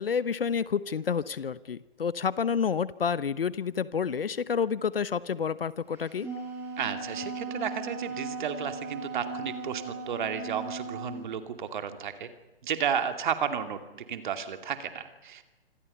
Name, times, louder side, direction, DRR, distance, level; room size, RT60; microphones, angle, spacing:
voice 1, 0.0-6.3, left 6 dB, 65° left, 18 dB, 1.0 m, -29 dB
Wind instrument woodwind instrument, 6.0-11.2, right 3 dB, 5° right, 7.3 m, -37 dB
voice 2, 6.8-12.3 12.6-15.5, right 8 dB, 50° right, 8 dB, 2.5 m, -33 dB
26.5 x 26.0 x 5.5 m, 1.1 s
figure-of-eight pair, 130°, 32 cm